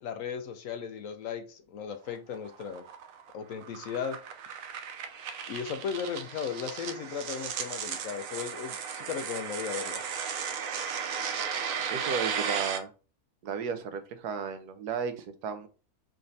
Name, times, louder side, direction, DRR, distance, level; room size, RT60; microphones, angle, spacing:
voice 1, 0.0-2.8 3.3-4.2 5.5-10.0, left 7 dB, 65° left, 0.9 m, -36 dB
sound 1, 2.1-12.8, right 7 dB, 65° right, 1.0 m, -35 dB
voice 2, 11.9-12.9 13.4-15.7, right 6 dB, 85° right, 1.3 m, -34 dB
4.9 x 3.3 x 2.6 m
omnidirectional pair, 1.6 m